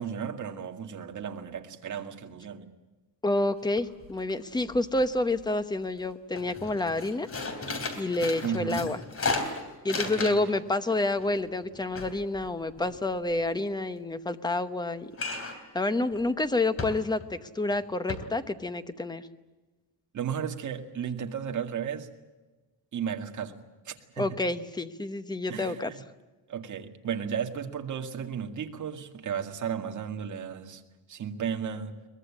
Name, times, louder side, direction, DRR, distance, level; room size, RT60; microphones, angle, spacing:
voice 1, 0.0-2.7 8.4-8.9 10.2-10.5 20.1-22.1 22.9-23.6 23.9-24.3 25.5-26.0 26.5-30.8 31.1-31.9, right 8 dB, 40° right, 4 dB, 2.1 m, -34 dB
voice 2, 3.2-7.3 8.0-9.0 9.8-15.1 15.7-19.3 24.2-25.9, left 2 dB, 10° left, 11 dB, 0.9 m, -29 dB
sound 1, 3.4-3.5 3.8-4.3 4.6-5.4 5.8-6.0 6.3-10.6 10.9-13.3 15.1-15.7 16.1-16.3 16.8-17.3 17.7-17.8 18.1-18.2, left 3 dB, 30° left, 3.5 m, -35 dB
23.0 x 20.5 x 8.6 m, 1.2 s
cardioid pair, 165°, 45 cm